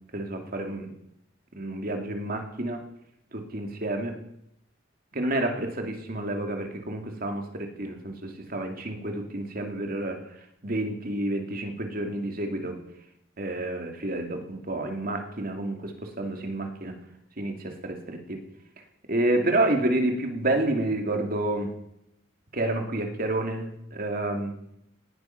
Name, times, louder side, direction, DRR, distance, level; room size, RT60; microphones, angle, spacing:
voice 1, 0.1-0.9 1.5-2.8 3.3-4.2 5.1-10.2 10.6-12.8 13.4-17.0 17.4-18.4 19.1-21.7 22.5-24.5, right 1 dB, 50° right, 3 dB, 2.6 m, -29 dB
19.0 x 9.9 x 5.8 m, 0.78 s
head